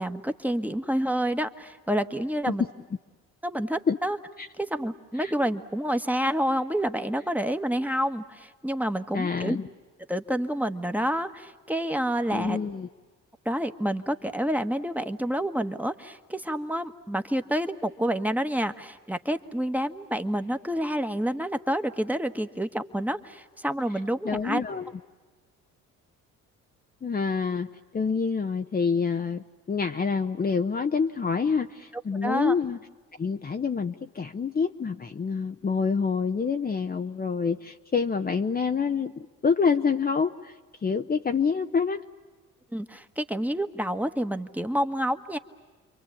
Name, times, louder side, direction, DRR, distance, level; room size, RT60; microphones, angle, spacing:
voice 1, 0.0-2.6 3.4-4.2 4.6-9.6 10.1-12.6 13.4-24.6 32.2-32.5 42.7-45.4, equal, 5° right, 8 dB, 1.3 m, -28 dB
voice 2, 9.1-9.7 12.3-12.9 24.2-24.9 27.0-27.7 27.9-32.8 33.2-40.5 40.8-42.0, left 5 dB, 30° left, 6 dB, 0.8 m, -27 dB
29.5 x 23.5 x 8.5 m, 1.3 s
supercardioid pair, 75°, 33 cm